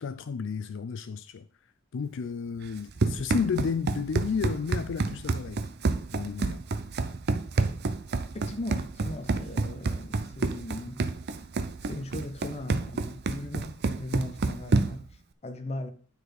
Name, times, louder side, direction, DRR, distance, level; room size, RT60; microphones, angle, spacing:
voice 1, 0.0-1.5 1.9-5.6 6.1-6.6, left 5 dB, 65° left, 0.4 m, -32 dB
Run, 2.7-15.1, right 3 dB, 55° right, 0.5 m, -29 dB
voice 2, 8.3-11.0 11.9-15.9, left 1 dB, 30° left, 0.8 m, -38 dB
9.4 x 4.1 x 4.7 m
head